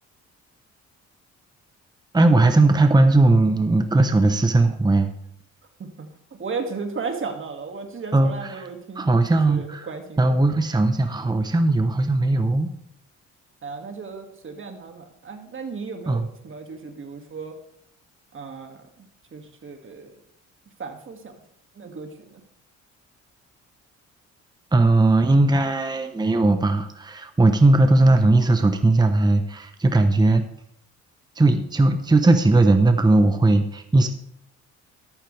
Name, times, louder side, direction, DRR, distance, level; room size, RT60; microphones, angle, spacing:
voice 1, 2.1-5.1 8.1-8.6 9.0-9.9 10.2-12.7 16.1-16.2 24.7-30.4 31.4-34.1, right 2 dB, 15° right, 7 dB, 1.0 m, -18 dB
voice 2, 6.4-10.4 13.6-17.6 18.3-19.1 19.3-20.2 20.8-21.3 21.8-22.4, right 4 dB, 40° right, 4 dB, 2.4 m, -35 dB
13.0 x 12.0 x 3.5 m, 0.72 s
cardioid pair, 90°, 30 cm